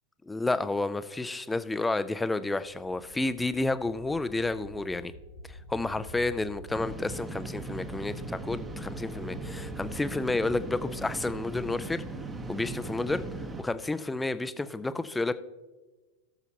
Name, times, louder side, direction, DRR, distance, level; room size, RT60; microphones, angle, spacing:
voice 1, 0.3-5.1 5.5-12.0 12.5-13.2 13.6-15.3, left 2 dB, 10° left, 13 dB, 0.5 m, -30 dB
sound 1, 2.6-10.0, equal, 75° right, 1.2 m, -48 dB
sound 2, 6.7-13.6, right 2 dB, 15° right, 0.9 m, -38 dB
18.0 x 6.9 x 2.8 m, 1.2 s
figure-of-eight pair, 90°, 0 cm